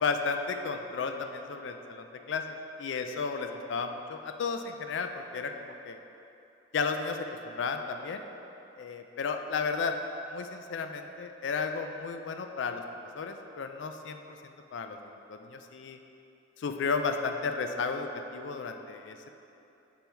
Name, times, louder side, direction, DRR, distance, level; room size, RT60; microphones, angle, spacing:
voice 1, 0.0-6.0 6.7-8.2 8.8-9.9 10.3-12.8 13.2-14.2 14.7-15.0 15.3-16.0 16.6-19.3, left 5 dB, 70° left, 6 dB, 0.4 m, -33 dB
5.3 x 4.4 x 4.5 m, 2.9 s
head